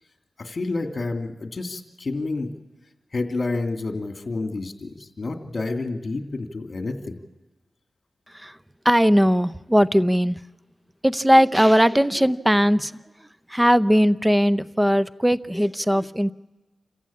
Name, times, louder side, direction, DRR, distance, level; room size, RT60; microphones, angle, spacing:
voice 1, 0.4-2.5 3.1-7.2, left 3 dB, 50° left, 4 dB, 2.6 m, -29 dB
voice 2, 8.8-10.4 11.0-12.9 13.5-16.3, equal, 10° right, 14 dB, 0.6 m, -19 dB
28.0 x 15.0 x 8.7 m, 1.1 s
cardioid pair, 55°, 0 cm